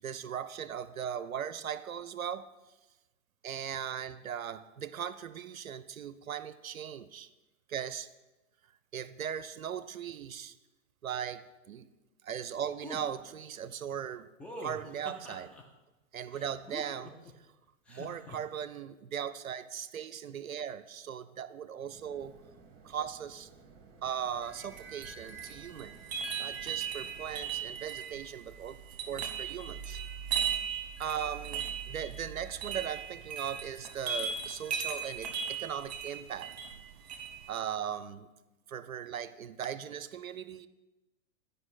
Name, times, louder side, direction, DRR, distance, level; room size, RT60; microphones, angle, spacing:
voice 1, 0.0-2.5 3.4-7.3 7.7-8.1 8.9-10.6 11.0-11.9 12.2-14.3 14.6-15.5 16.1-17.5 17.9-22.4 22.8-23.5 24.0-26.0 26.4-28.8 29.1-30.0 31.0-36.5 37.5-38.3 38.7-40.7, right 8 dB, 85° right, 14 dB, 0.5 m, -38 dB
sound 1, 12.8-13.0 14.4-15.6 16.3-17.3 17.9-18.4, equal, 5° left, 0.3 m, -44 dB
sound 2, 21.9-27.8, right 4 dB, 30° right, 1.3 m, -57 dB
sound 3, 24.4-37.5, right 7 dB, 50° right, 1.0 m, -38 dB
10.5 x 5.2 x 4.2 m, 1.1 s
figure-of-eight pair, 95°, 40 cm